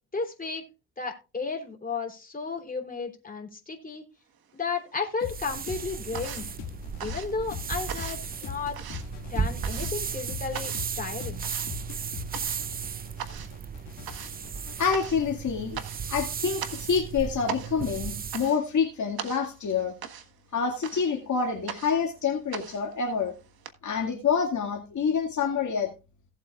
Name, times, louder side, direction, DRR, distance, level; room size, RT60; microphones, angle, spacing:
voice 1, 0.1-0.6 1.0-4.0 4.5-6.4 7.0-8.8 9.3-11.4, left 4 dB, 20° left, 1 dB, 3.3 m, -33 dB
sound 1, 4.3-5.1 5.4-23.7, right 8 dB, 60° right, 1.5 m, -41 dB
sound 2, 5.2-14.8, left 8 dB, 85° left, 2.1 m, -41 dB
sound 3, 5.2-18.5, right 7 dB, 25° right, 0.4 m, -35 dB
voice 2, 14.8-15.8 16.1-19.9 20.5-23.3 23.8-25.9, left 6 dB, 45° left, 0 dB, 2.2 m, -27 dB
17.5 x 8.0 x 2.4 m, 0.29 s
cardioid pair, 90°, 41 cm